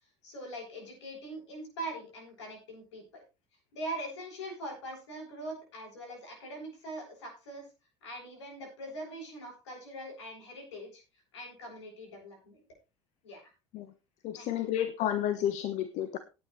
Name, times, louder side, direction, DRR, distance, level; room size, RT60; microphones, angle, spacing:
voice 1, 0.2-3.2 3.7-7.7 8.0-11.0 11.3-12.6 13.2-13.4 14.3-14.7, right 1 dB, 70° left, 2 dB, 7.9 m, -42 dB
voice 2, 14.2-16.2, left 10 dB, 50° left, 11 dB, 1.4 m, -31 dB
18.0 x 9.5 x 3.3 m, 0.30 s
figure-of-eight pair, 65°, 15 cm